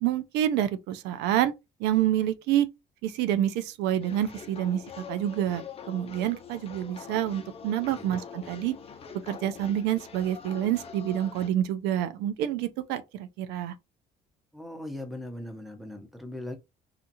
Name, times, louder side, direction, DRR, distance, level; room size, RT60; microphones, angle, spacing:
voice 1, 0.0-1.5 1.8-2.7 3.0-4.8 5.1-5.6 5.9-8.7 9.2-13.7, right 11 dB, 90° right, 0.4 m, -27 dB
sound 1, 4.0-11.5, left 6 dB, 35° left, 0.6 m, -44 dB
voice 2, 14.5-16.6, left 1 dB, ahead, 0.7 m, -39 dB
2.8 x 2.4 x 2.6 m
cardioid pair, 110°, 17 cm